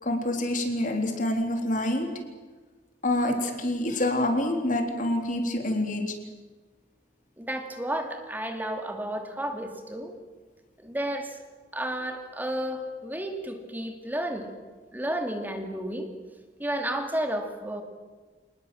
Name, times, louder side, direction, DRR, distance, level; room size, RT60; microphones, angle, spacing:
voice 1, 0.0-2.1 3.0-6.1, left 1 dB, 50° left, 4 dB, 3.6 m, -27 dB
voice 2, 7.4-10.1 10.8-11.4 11.7-14.5 14.9-16.1 16.6-17.8, right 1 dB, 10° right, 5 dB, 2.7 m, -32 dB
27.0 x 19.5 x 7.7 m, 1.3 s
head